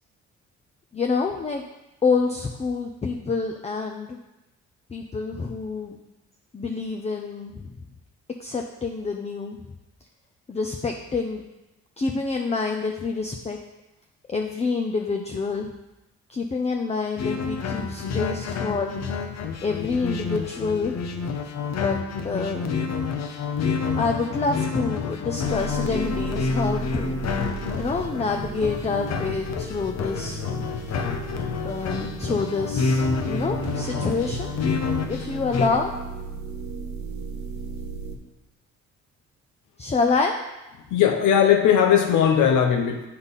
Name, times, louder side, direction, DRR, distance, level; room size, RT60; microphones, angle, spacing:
voice 1, 0.9-1.6 2.0-4.2 4.9-6.0 6.5-7.8 8.4-9.6 10.5-11.4 12.0-13.6 14.3-15.7 16.3-19.0 19.6-21.0 21.7-22.0 22.2-22.9 24.0-27.2 27.7-30.4 31.6-34.5 35.1-35.9 39.8-40.4, left 4 dB, 20° left, 3 dB, 0.6 m, -27 dB
sound 1, 17.2-35.7, left 5 dB, 60° left, 0.8 m, -28 dB
sound 2, 25.4-38.2, right 5 dB, 65° right, 1.2 m, -36 dB
voice 2, 40.9-43.1, left 8 dB, 85° left, 3 dB, 0.8 m, -18 dB
7.9 x 5.6 x 4.0 m, 1.0 s
cardioid pair, 90°, 30 cm